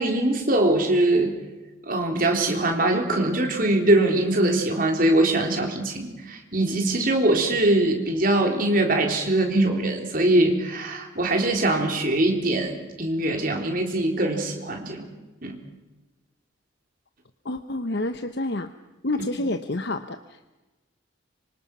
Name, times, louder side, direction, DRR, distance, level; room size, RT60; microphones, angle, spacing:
voice 1, 0.0-1.4 1.8-15.1 15.4-15.6, right 1 dB, 45° right, 3 dB, 3.7 m, -22 dB
voice 2, 17.4-18.7 19.0-20.5, left 2 dB, 55° left, 8 dB, 0.9 m, -28 dB
26.0 x 25.0 x 6.1 m, 1.1 s
head